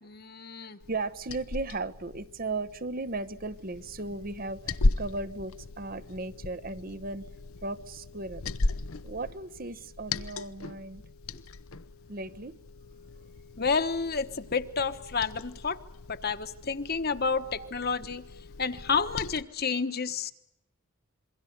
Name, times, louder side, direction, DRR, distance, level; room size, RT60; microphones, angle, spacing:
voice 1, 0.0-0.8 13.6-15.8 16.1-18.2 18.6-20.3, left 5 dB, 45° left, 9 dB, 1.2 m, -30 dB
voice 2, 0.6-7.3 7.6-8.5 9.0-11.0 12.1-12.6 17.6-17.7, right 3 dB, 45° right, 12 dB, 0.9 m, -36 dB
Liquid, 0.8-19.4, left 2 dB, 80° left, 0.9 m, -37 dB
27.0 x 23.0 x 6.7 m, 0.79 s
head